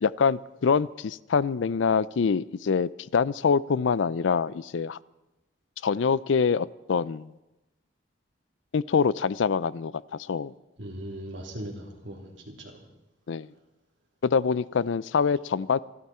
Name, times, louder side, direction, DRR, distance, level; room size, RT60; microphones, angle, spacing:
voice 1, 0.0-5.0 5.8-7.3 8.7-10.5 13.3-13.5 14.2-15.8, left 5 dB, 80° left, 20 dB, 0.4 m, -25 dB
voice 2, 10.8-12.8, right 1 dB, 75° right, 0 dB, 3.3 m, -39 dB
26.5 x 12.0 x 4.4 m, 0.97 s
head